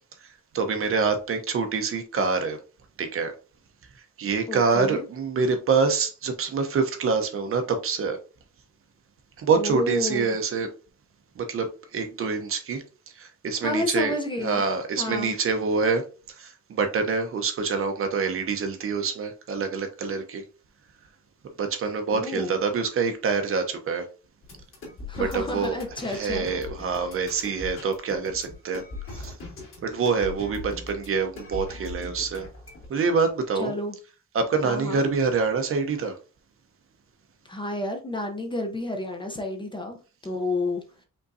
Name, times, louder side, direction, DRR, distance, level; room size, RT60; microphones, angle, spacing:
voice 1, 0.2-2.6 3.0-3.3 4.2-8.2 9.4-10.7 11.4-14.1 14.4-20.4 21.6-24.1 25.1-25.8 26.1-28.8 29.2-29.3 29.8-32.5 32.9-33.7 34.3-36.2, right 5 dB, 45° right, 0.8 m, -26 dB
voice 2, 4.5-5.0 9.5-10.4 13.6-14.6 15.0-15.3 22.1-22.6 25.1-26.5 26.8-26.9 33.6-34.0 34.6-35.1 37.4-41.0, left 1 dB, 15° left, 0.7 m, -30 dB
sound 1, 24.4-32.9, left 3 dB, 45° left, 2.2 m, -40 dB
5.3 x 3.7 x 2.6 m
wide cardioid pair, 180°, 29 cm